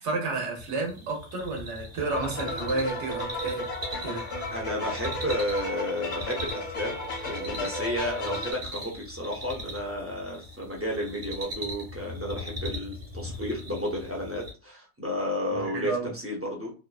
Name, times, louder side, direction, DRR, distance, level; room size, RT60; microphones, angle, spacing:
voice 1, 0.0-3.7 4.0-4.2 15.5-16.1, right 3 dB, 85° right, 1 dB, 1.1 m, -31 dB
sound 1, 0.6-14.5, left 1 dB, 45° right, 1.1 m, -40 dB
sound 2, 2.0-8.5, left 2 dB, 90° left, 1.3 m, -34 dB
voice 2, 4.5-7.0 7.2-16.7, equal, 25° right, -1 dB, 0.3 m, -32 dB
2.9 x 2.3 x 2.3 m, 0.36 s
omnidirectional pair, 1.2 m